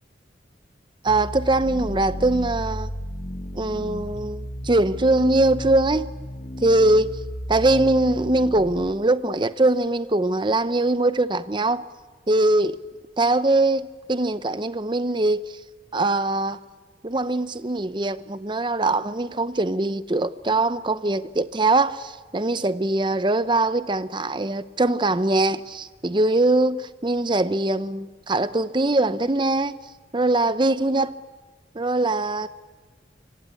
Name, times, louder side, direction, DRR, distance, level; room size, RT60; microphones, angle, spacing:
voice 1, 1.0-2.9 3.5-6.1 6.6-7.1 7.5-11.8 12.3-12.8 13.2-15.5 15.9-16.6 17.0-29.8 30.1-31.1 31.7-32.5, right 2 dB, 25° right, 0.7 m, -22 dB
sound 1, 1.1-8.9, equal, 35° left, 1.3 m, -33 dB
26.5 x 24.5 x 8.5 m
head